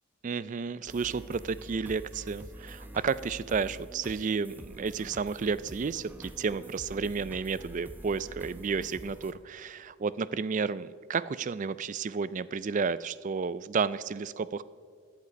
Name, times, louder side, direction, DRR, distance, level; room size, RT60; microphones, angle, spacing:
voice 1, 0.2-14.6, right 5 dB, 35° right, 17 dB, 0.3 m, -32 dB
sound 1, 0.8-9.3, right 1 dB, 10° right, 0.8 m, -46 dB
16.5 x 11.0 x 5.2 m, 2.1 s
head